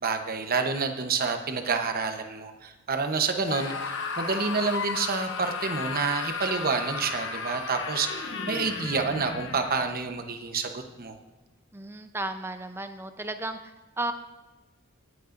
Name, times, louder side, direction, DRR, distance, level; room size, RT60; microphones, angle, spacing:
voice 1, 0.0-11.2, right 4 dB, 45° right, 5 dB, 0.9 m, -28 dB
Screaming, 3.4-9.9, left 4 dB, 60° left, 1.1 m, -34 dB
sound 1, 7.3-10.4 10.8-11.2, left 2 dB, 40° left, 0.7 m, -43 dB
voice 2, 11.7-14.1, right 2 dB, 10° right, 8 dB, 0.6 m, -34 dB
18.5 x 8.5 x 2.6 m, 1.2 s
head